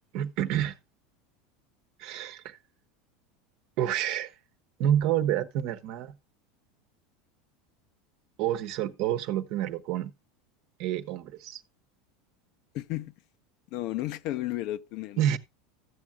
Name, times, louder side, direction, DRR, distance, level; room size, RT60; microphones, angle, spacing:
voice 1, 0.1-0.7 2.0-2.6 3.8-4.3 4.8-6.1 8.4-10.1 10.8-11.6 15.2-15.4, right 11 dB, 60° right, 1.0 m, -28 dB
voice 2, 12.7-13.1 13.7-15.4, left 15 dB, 60° left, 0.6 m, -33 dB
14.5 x 7.3 x 2.3 m
supercardioid pair, 115°, 0 cm